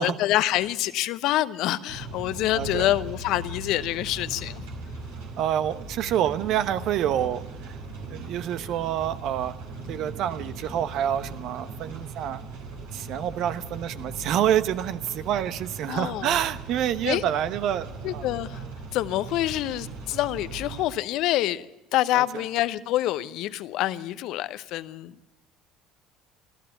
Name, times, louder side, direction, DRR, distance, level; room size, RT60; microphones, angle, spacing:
voice 1, 0.0-4.6 15.9-16.4 17.0-17.2 18.0-18.6 18.9-25.1, left 15 dB, 60° left, 15 dB, 0.8 m, -26 dB
sound 1, 1.9-20.9, right 3 dB, 75° right, 4.8 m, -39 dB
voice 2, 2.5-3.0 5.4-7.8 8.1-9.6 9.9-12.4 12.9-18.3 22.1-22.2, right 10 dB, 55° right, 13 dB, 1.0 m, -27 dB
25.0 x 14.5 x 6.9 m, 0.97 s
figure-of-eight pair, 60°, 0 cm